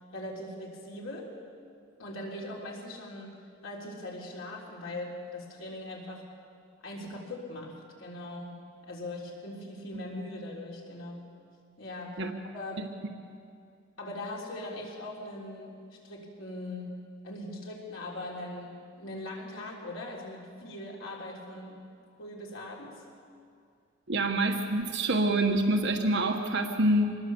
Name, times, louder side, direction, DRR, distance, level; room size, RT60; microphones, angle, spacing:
voice 1, 0.1-1.3 2.0-3.4 3.6-6.2 6.8-11.2 11.8-12.2 12.5-12.9 14.0-16.9 17.2-21.8 22.2-23.0, left 1 dB, 80° left, -2 dB, 3.7 m, -40 dB
voice 2, 24.1-27.2, right 1 dB, 60° right, 3 dB, 1.4 m, -26 dB
25.5 x 20.5 x 7.1 m, 2.4 s
head